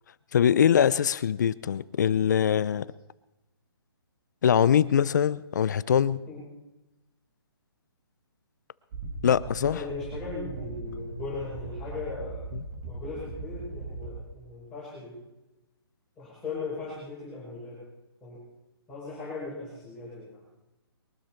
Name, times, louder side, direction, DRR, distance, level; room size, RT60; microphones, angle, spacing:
voice 1, 0.3-2.9 4.4-6.2 9.2-9.8, left 8 dB, 45° left, 0.6 m, -23 dB
sound 1, 8.9-14.1, right 3 dB, 40° right, 5.3 m, -39 dB
voice 2, 9.6-12.5 12.8-15.2 16.2-17.9 18.2-18.4 18.9-20.4, left 3 dB, 5° left, 5.5 m, -38 dB
22.5 x 12.5 x 4.5 m
hypercardioid pair, 165°, 13 cm